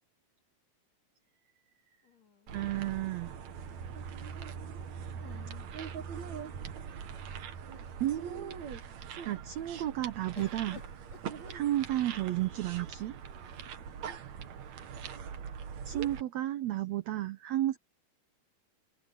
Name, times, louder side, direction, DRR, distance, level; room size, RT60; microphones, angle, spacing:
sound 1, 2.0-3.1 5.1-6.7 7.4-7.5 7.8-8.4 10.4-12.2 13.2-13.9, left 6 dB, 50° left, 4.3 m, -55 dB
sound 2, 2.5-16.2, right 7 dB, 60° right, 2.6 m, -42 dB
voice 1, 2.5-3.3 8.0-8.6 9.2-10.8 11.5-13.1 15.8-17.8, right 13 dB, 90° right, 1.5 m, -32 dB
omnidirectional pair, 4.1 m